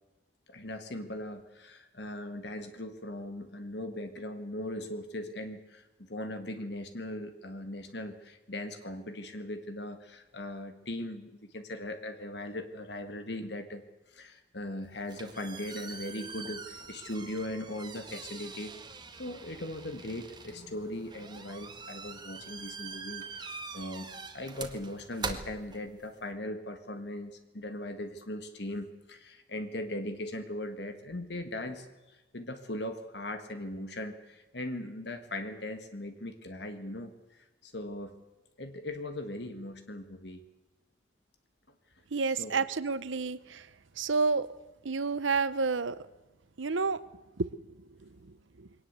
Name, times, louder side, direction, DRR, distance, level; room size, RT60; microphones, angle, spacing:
voice 1, 0.5-13.8 14.1-18.7 19.2-38.2 38.6-40.4 42.3-42.7, left 1 dB, 60° left, 8 dB, 1.7 m, -39 dB
sound 1, 14.8-26.3, right 4 dB, 20° right, 1.7 m, -44 dB
voice 2, 42.1-43.6 44.0-44.5 44.8-46.0 46.6-47.0, right 4 dB, 85° right, 16 dB, 0.8 m, -29 dB
22.5 x 18.5 x 8.1 m, 1.1 s
head